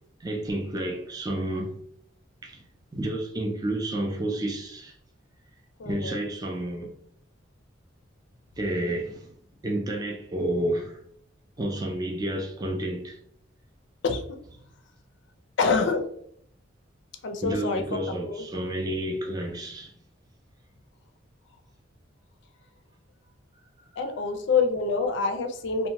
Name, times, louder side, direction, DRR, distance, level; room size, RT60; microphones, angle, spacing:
voice 1, 0.2-1.8 2.4-2.6 2.9-4.9 5.8-6.9 8.6-9.3 9.6-11.0 11.6-13.2 17.4-19.9, right 1 dB, 20° right, 0.4 m, -30 dB
voice 2, 5.8-6.2 14.0-14.4 15.6-16.0 17.2-18.0 18.3-18.5 24.0-25.9, left 4 dB, 65° left, 0.4 m, -26 dB
2.7 x 2.1 x 2.8 m
head